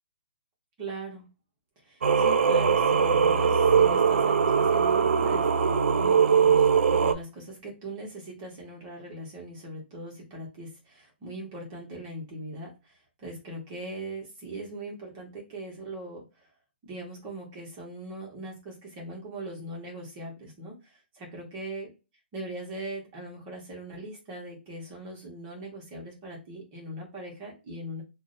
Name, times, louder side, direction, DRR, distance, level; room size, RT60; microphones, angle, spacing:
voice 1, 0.8-1.3 1.8-16.5 16.8-21.9 22.3-28.0, right 2 dB, 20° right, -2 dB, 0.9 m, -40 dB
Singing, 2.0-7.1, right 6 dB, 85° right, 0.4 m, -21 dB
2.6 x 2.1 x 3.8 m, 0.28 s
hypercardioid pair, 175°, 7 cm